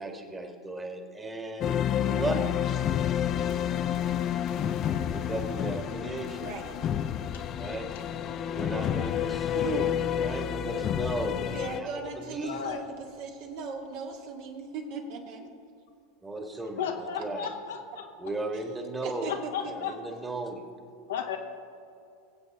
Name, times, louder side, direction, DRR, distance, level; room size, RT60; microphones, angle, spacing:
voice 1, 0.0-2.4 5.0-6.5 7.6-7.9 8.4-11.5 11.8-11.9 12.2-12.7 16.2-17.5 18.2-19.3 19.7-20.7, right 2 dB, 15° right, 3 dB, 1.7 m, -35 dB
sound 1, 1.6-11.8, left 10 dB, 40° left, 0.5 m, -29 dB
sound 2, 3.5-13.5 13.8-13.9, left 5 dB, 55° left, 1.5 m, -47 dB
voice 2, 6.4-6.8 11.5-15.5 18.7-19.7, right 4 dB, 60° right, 1 dB, 2.0 m, -39 dB
voice 3, 12.4-12.8 16.8-18.1 19.3-20.0 21.1-21.4, left 8 dB, 75° left, 4 dB, 1.3 m, -34 dB
21.0 x 7.9 x 3.6 m, 2.5 s
hypercardioid pair, 95°, 0 cm